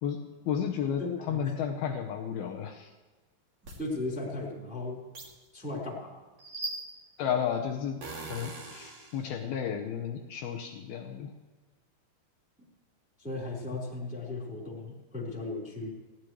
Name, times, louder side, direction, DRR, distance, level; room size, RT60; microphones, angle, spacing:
voice 1, 0.0-2.9 7.2-11.3, left 8 dB, 85° left, 3 dB, 2.1 m, -33 dB
voice 2, 1.0-1.5 3.8-5.0 5.5-6.2 13.2-15.9, left 2 dB, ahead, -3 dB, 2.9 m, -36 dB
sound 1, 3.6-3.8 5.1-5.3 6.4-7.2 8.0-9.2, right 2 dB, 40° right, 3.1 m, -40 dB
20.0 x 16.5 x 3.2 m, 1.3 s
omnidirectional pair, 5.7 m